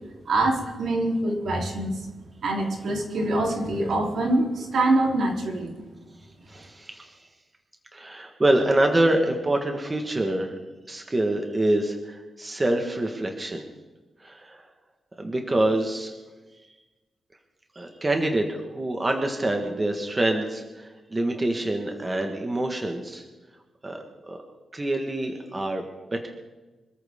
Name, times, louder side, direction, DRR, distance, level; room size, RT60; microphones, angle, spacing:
voice 1, 0.3-2.0 2.4-5.7, right 2 dB, 70° right, 0 dB, 3.5 m, -24 dB
voice 2, 6.5-7.1 7.9-10.6 10.9-13.7 14.2-14.6 15.2-16.1 17.7-23.2 23.8-24.4 24.7-25.8 26.1-26.3, right 1 dB, 20° right, 3 dB, 1.5 m, -26 dB
25.5 x 14.0 x 3.7 m, 1.2 s
wide cardioid pair, 165°, 0 cm